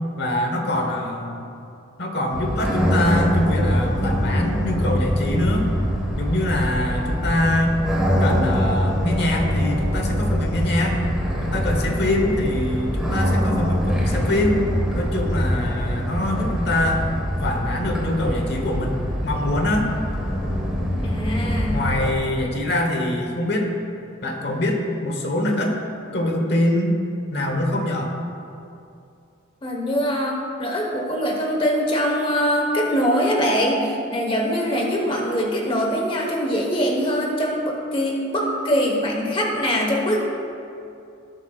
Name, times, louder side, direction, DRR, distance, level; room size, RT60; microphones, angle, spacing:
voice 1, 0.2-1.4 2.0-5.7 6.2-7.8 8.2-11.0 11.4-14.6 14.9-17.0 17.4-19.9 21.7-23.7 24.2-25.8 26.1-27.0 27.3-28.1, left 1 dB, 55° left, 2 dB, 1.2 m, -24 dB
sound 1, 2.3-22.1, equal, 5° right, 1.4 m, -24 dB
voice 2, 21.0-21.9 29.6-40.5, equal, 25° left, 0 dB, 1.3 m, -23 dB
19.0 x 8.1 x 2.5 m, 2.6 s
head